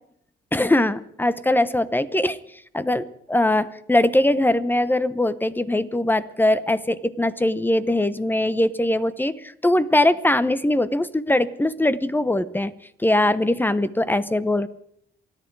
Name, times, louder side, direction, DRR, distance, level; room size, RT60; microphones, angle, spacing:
voice 1, 0.5-2.4 2.7-12.7 13.0-14.7, left 1 dB, 10° left, 15 dB, 1.0 m, -21 dB
28.0 x 10.5 x 4.8 m, 0.69 s
cardioid pair, 90°, 20 cm